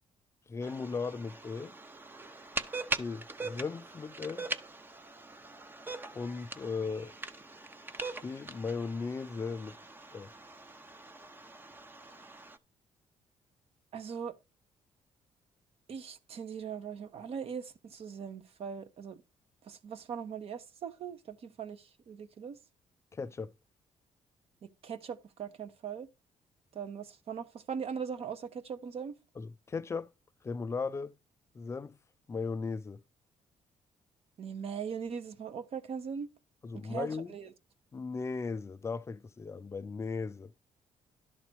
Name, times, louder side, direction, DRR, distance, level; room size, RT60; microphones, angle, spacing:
voice 1, 0.5-1.7 2.9-4.5 6.1-7.1 8.2-9.8 10.1-10.3 23.1-23.5 29.4-30.1 30.4-31.1 31.5-32.0 32.3-33.0 36.6-37.3 37.9-40.5, left 4 dB, 25° left, 0.4 m, -37 dB
sound 1, 0.6-12.6, right 3 dB, 15° right, 0.7 m, -42 dB
voice 2, 13.9-14.3 15.9-19.2 19.6-22.6 24.8-26.1 26.7-29.1 34.4-36.3 36.8-37.5, right 7 dB, 55° right, 1.2 m, -40 dB
12.0 x 4.0 x 6.2 m
cardioid pair, 150°, 12 cm